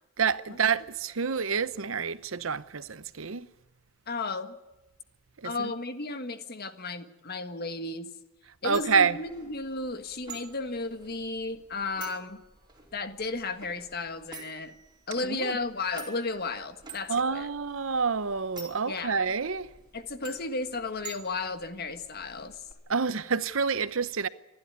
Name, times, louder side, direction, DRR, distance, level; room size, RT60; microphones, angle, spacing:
voice 1, 0.2-3.5 5.4-5.7 8.6-9.2 15.3-15.6 17.1-19.7 22.9-24.3, right 5 dB, 70° right, 0.8 m, -28 dB
voice 2, 4.1-4.6 5.4-8.1 8.6-12.4 12.9-14.7 15.1-17.5 18.9-19.3 19.9-22.6, left 3 dB, 50° left, 1.6 m, -34 dB
sound 1, 8.7-22.7, right 4 dB, 20° right, 4.7 m, -49 dB
27.5 x 12.0 x 9.7 m
head